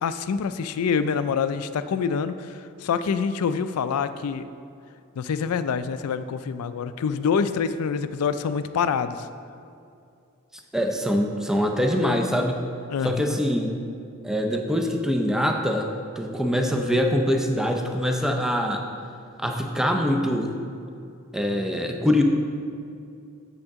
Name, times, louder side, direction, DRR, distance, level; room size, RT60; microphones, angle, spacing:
voice 1, 0.0-4.5 5.2-9.3 12.9-13.4, left 6 dB, 85° left, 12 dB, 0.4 m, -26 dB
voice 2, 10.7-12.6 13.0-13.7 14.2-15.9 16.2-18.8 19.4-20.5 21.3-22.2, equal, ahead, 3 dB, 0.5 m, -24 dB
7.8 x 7.1 x 3.6 m, 2.5 s
head